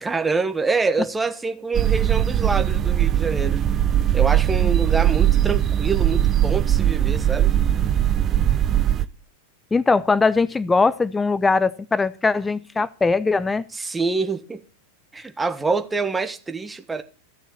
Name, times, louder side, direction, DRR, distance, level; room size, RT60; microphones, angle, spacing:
voice 1, 0.0-3.7 4.1-7.5 13.7-14.6 15.1-17.0, right 4 dB, 10° right, 1.4 m, -26 dB
sound 1, 1.7-9.1, right 11 dB, 25° right, 1.0 m, -20 dB
voice 2, 9.7-13.6, left 4 dB, 10° left, 0.8 m, -20 dB
15.5 x 7.0 x 7.4 m
figure-of-eight pair, 90°, 0 cm